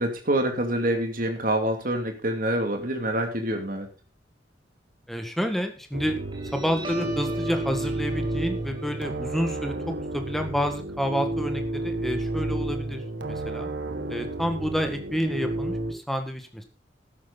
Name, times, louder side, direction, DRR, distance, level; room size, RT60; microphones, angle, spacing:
voice 1, 0.0-3.9, right 1 dB, 50° right, 4 dB, 2.6 m, -26 dB
voice 2, 5.1-6.2 6.5-13.7 14.1-16.6, equal, ahead, 6 dB, 1.8 m, -29 dB
sound 1, 5.9-15.9, right 2 dB, 80° right, 1.6 m, -31 dB
Guitar, 6.1-13.1, right 1 dB, 25° right, 3.5 m, -42 dB
12.5 x 10.0 x 4.1 m, 0.32 s
head